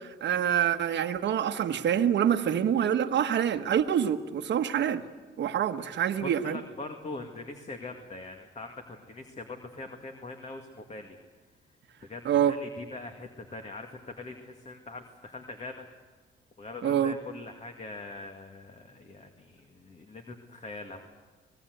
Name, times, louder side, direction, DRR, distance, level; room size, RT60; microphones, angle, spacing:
voice 1, 0.0-5.0 5.4-6.6 12.2-12.5 16.8-17.1, right 9 dB, 65° right, 1.2 m, -26 dB
voice 2, 6.2-11.2 12.0-15.9 16.6-21.0, left 3 dB, 35° left, 2.1 m, -42 dB
25.5 x 19.0 x 8.0 m
cardioid pair, 90°, 20 cm